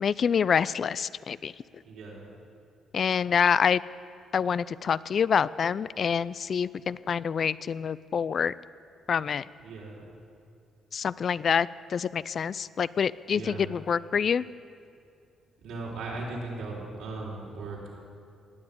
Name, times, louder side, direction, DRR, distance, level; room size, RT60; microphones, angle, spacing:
voice 1, 0.0-1.5 2.9-3.8 4.3-8.5 9.1-9.4 10.9-14.4, left 7 dB, 50° left, 19 dB, 0.4 m, -26 dB
voice 2, 1.9-2.3 9.6-10.0 13.3-13.7 15.6-17.8, right 3 dB, 85° right, -4 dB, 4.1 m, -37 dB
19.0 x 7.8 x 8.7 m, 2.4 s
cardioid pair, 90°, 0 cm